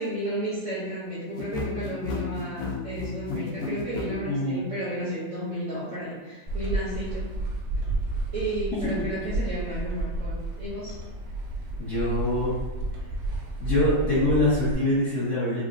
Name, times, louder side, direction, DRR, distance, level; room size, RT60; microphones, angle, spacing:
voice 1, 0.0-7.3 8.3-11.0, right 1 dB, 60° right, -9 dB, 0.8 m, -33 dB
sound 1, 1.3-4.1, left 4 dB, 80° left, 0.7 m, -32 dB
voice 2, 4.2-4.7 11.8-12.5 13.6-15.6, left 1 dB, 55° left, -10 dB, 0.9 m, -24 dB
sound 2, 6.5-14.7, right 2 dB, 75° right, 1.2 m, -31 dB
3.7 x 2.0 x 2.4 m, 1.2 s
omnidirectional pair, 2.0 m